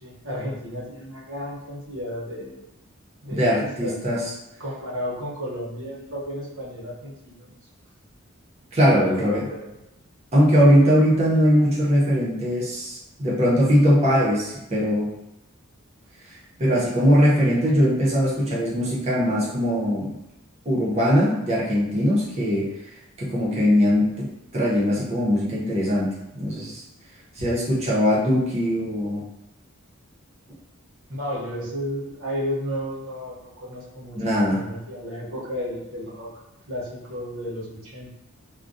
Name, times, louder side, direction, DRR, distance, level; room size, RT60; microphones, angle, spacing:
voice 1, 0.0-2.6 3.2-4.2 4.6-7.6 8.9-9.7 31.1-36.3 36.7-38.1, equal, 65° right, -5 dB, 0.8 m, -33 dB
voice 2, 3.3-4.2 8.7-9.4 10.3-15.1 16.6-20.2 20.6-22.7 23.2-26.8 27.4-29.2 34.2-34.6, equal, 30° right, -6 dB, 0.7 m, -20 dB
2.3 x 2.2 x 2.5 m, 0.88 s
head